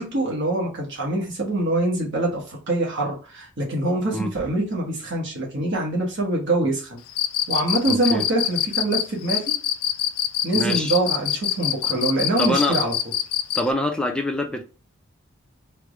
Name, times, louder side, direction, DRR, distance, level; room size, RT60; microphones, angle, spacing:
voice 1, 0.0-7.0 7.5-9.5 10.4-12.9, right 2 dB, 55° right, 0.9 m, -24 dB
Cricket, 7.1-13.7, left 12 dB, 85° left, 0.4 m, -24 dB
voice 2, 7.9-8.2 10.5-10.9 12.4-12.8 13.6-14.6, left 1 dB, 5° left, 0.4 m, -25 dB
3.2 x 2.0 x 3.5 m
head